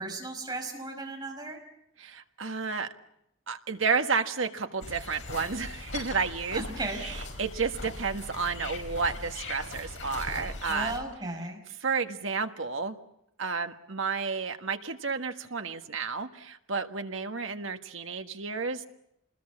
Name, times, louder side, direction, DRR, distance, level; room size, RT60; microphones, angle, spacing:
voice 1, 0.0-1.6 6.5-7.0 10.7-11.6, right 2 dB, 20° right, 2 dB, 5.7 m, -35 dB
voice 2, 2.0-2.9 3.5-10.9 11.8-12.9 13.4-18.9, right 5 dB, 75° right, 6 dB, 1.6 m, -31 dB
sound 1, 4.8-11.0, left 2 dB, 70° left, 5.5 m, -39 dB
28.5 x 21.0 x 7.3 m, 0.79 s
head